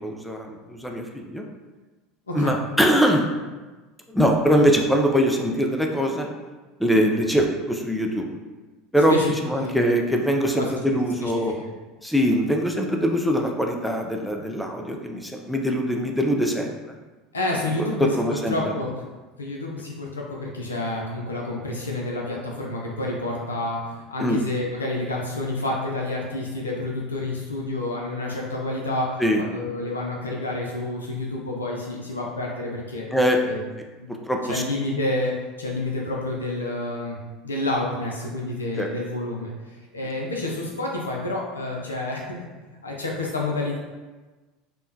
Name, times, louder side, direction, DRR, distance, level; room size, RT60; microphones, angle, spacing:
voice 1, 0.0-1.4 2.3-3.3 4.1-6.3 6.8-8.3 8.9-9.2 9.5-11.5 12.0-17.0 17.8-18.8 24.2-24.4 29.2-29.4 33.1-33.4 34.3-34.6 38.8-38.9, equal, 5° left, 2 dB, 0.4 m, -22 dB
voice 2, 9.1-9.8 10.6-11.7 17.3-18.9 19.4-29.1 29.4-33.1 33.4-33.6 34.0-34.1 34.4-37.2 37.4-42.4 42.8-43.8, left 2 dB, 85° left, -1 dB, 0.4 m, -29 dB
3.5 x 2.1 x 2.6 m, 1.2 s
figure-of-eight pair, 75°, 0 cm